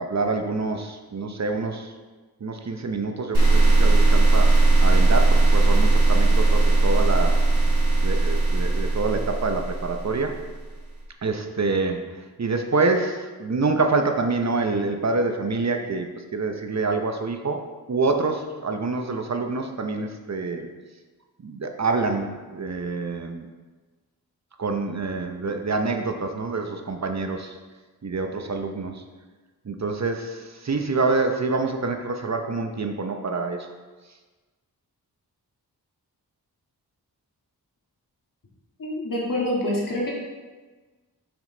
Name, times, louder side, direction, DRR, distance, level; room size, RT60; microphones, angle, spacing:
voice 1, 0.0-1.9 2.4-7.4 8.0-10.4 11.2-12.0 12.4-17.6 17.9-20.7 21.4-23.5 24.6-27.6 28.0-29.0 29.7-33.7, right 3 dB, 45° right, 5 dB, 0.8 m, -26 dB
sound 1, 3.3-10.5, right 2 dB, 80° right, 1.6 m, -18 dB
voice 2, 38.8-40.1, left 1 dB, 55° left, -4 dB, 2.0 m, -26 dB
5.9 x 5.4 x 3.9 m, 1.3 s
cardioid pair, 45°, 39 cm